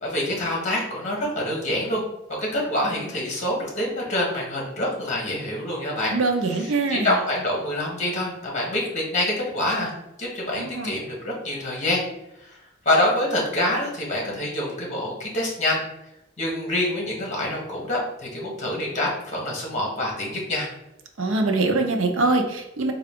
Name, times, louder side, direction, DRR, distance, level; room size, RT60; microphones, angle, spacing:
voice 1, 0.0-2.0 2.4-6.1 6.5-9.9 10.2-12.0 12.4-12.6 12.8-15.8 16.4-20.7, left 1 dB, 35° left, -2 dB, 1.1 m, -26 dB
voice 2, 6.1-7.1 10.6-11.0 21.2-22.9, right 3 dB, 70° right, 4 dB, 0.5 m, -23 dB
3.7 x 2.3 x 3.5 m, 0.86 s
head